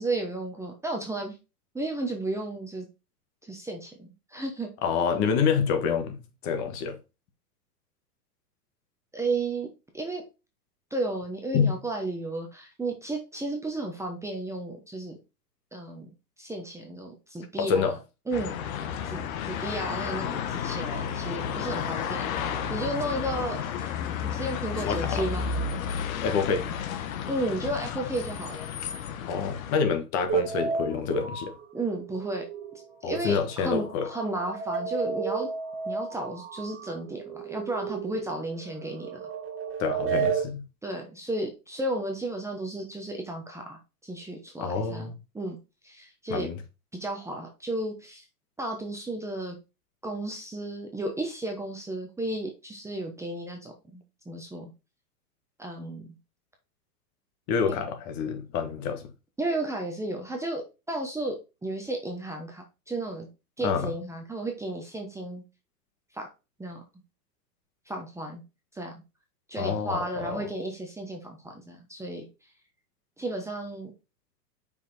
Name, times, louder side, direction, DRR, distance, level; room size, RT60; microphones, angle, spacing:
voice 1, 0.0-1.4 1.7-2.9 3.5-4.7 9.1-9.7 9.9-10.2 10.9-15.1 15.7-16.1 16.4-17.9 18.3-18.6 19.0-23.9 24.2-25.4 27.3-28.7 31.7-32.5 33.1-35.5 35.8-39.2 40.8-45.6 45.8-46.5 47.0-48.2 48.6-49.6 50.0-54.7 55.6-56.1 57.7-57.8 59.4-60.6 60.9-61.4 61.6-63.3 63.6-65.4 66.1-66.3 66.6-66.8 67.9-68.4 68.7-68.9 69.5-72.3 73.2-73.9, right 2 dB, 5° right, 0.9 m, -33 dB
voice 2, 4.8-6.2 6.4-7.0 11.5-11.7 17.6-17.9 24.8-25.2 26.2-26.7 29.3-31.5 33.0-34.1 39.8-40.6 44.6-45.1 46.3-46.6 57.5-59.1 63.6-63.9 69.6-70.4, left 6 dB, 35° left, 1.4 m, -27 dB
sound 1, 18.3-29.8, left 7 dB, 55° left, 1.3 m, -32 dB
sound 2, 30.3-32.8 33.1-40.4, right 6 dB, 25° right, 2.3 m, -33 dB
5.7 x 4.7 x 4.1 m
hypercardioid pair, 135°, 48 cm